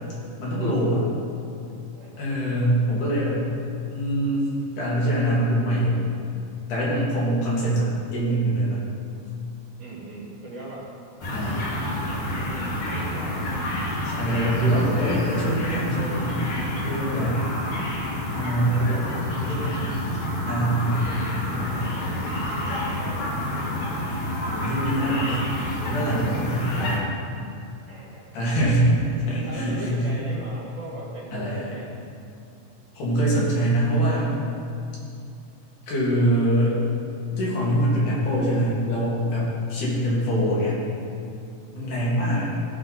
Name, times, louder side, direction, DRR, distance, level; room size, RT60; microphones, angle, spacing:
voice 1, 0.4-1.0 2.2-3.4 3.9-4.5 4.8-6.0 6.7-8.8 11.3-11.7 13.8-16.4 16.8-17.4 18.3-20.0 20.5-21.0 24.5-25.3 25.8-27.1 28.3-30.1 31.3-31.8 33.0-34.4 35.9-36.8 37.4-40.8 41.7-42.5, right 1 dB, 80° left, -6 dB, 3.7 m, -24 dB
voice 2, 1.9-2.4 7.5-7.9 9.8-10.9 11.9-13.5 18.6-19.1 20.8-24.1 25.0-25.6 27.9-28.7 29.5-31.9 39.7-40.0 41.8-42.2, right 2 dB, 45° right, -7 dB, 1.8 m, -40 dB
sound 1, 11.2-27.0, left 1 dB, 50° left, 2.0 m, -29 dB
14.0 x 6.1 x 4.0 m, 2.5 s
omnidirectional pair, 3.5 m